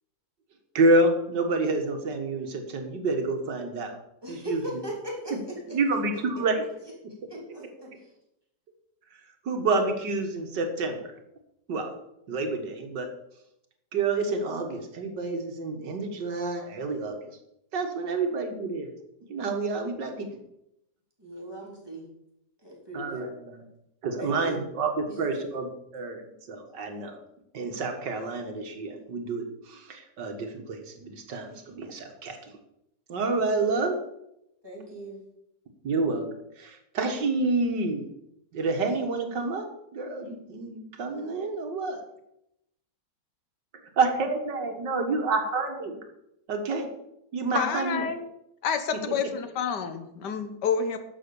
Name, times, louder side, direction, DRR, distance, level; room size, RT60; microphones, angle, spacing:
voice 1, 0.7-4.0 4.3-4.6 5.3-5.4 5.7-6.6 9.5-11.1 11.7-11.9 12.3-13.1 13.9-17.3 17.7-18.9 19.3-20.3 22.9-23.6 24.0-26.2 26.5-27.2 27.5-32.5 33.1-34.0 35.8-38.1 38.5-42.0 44.0-46.0 46.5-46.9 47.3-48.1 48.9-49.2, right 3 dB, 85° right, 5 dB, 2.2 m, -28 dB
voice 2, 4.2-6.2 7.3-8.1 18.1-18.2 21.2-22.1 22.6-23.3 24.2-24.6 25.1-25.4 34.6-35.2, equal, 15° right, -3 dB, 3.7 m, -39 dB
voice 3, 47.5-48.2 48.6-51.0, left 6 dB, 75° left, 10 dB, 1.6 m, -28 dB
11.0 x 7.1 x 7.0 m, 0.83 s
omnidirectional pair, 1.9 m